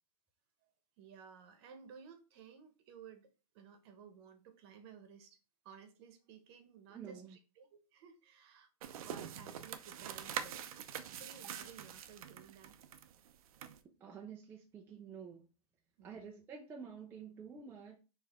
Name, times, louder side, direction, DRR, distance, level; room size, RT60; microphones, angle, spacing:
voice 1, 1.0-5.4 5.6-10.7 11.2-12.8 16.0-16.3, right 6 dB, 40° right, 1.0 m, -56 dB
voice 2, 6.9-7.4 14.0-15.5 16.0-18.0, right 6 dB, 10° right, 0.5 m, -49 dB
sound 1, 8.8-13.8, right 9 dB, 65° right, 0.6 m, -45 dB
4.6 x 3.2 x 3.6 m
hypercardioid pair, 150°, 20 cm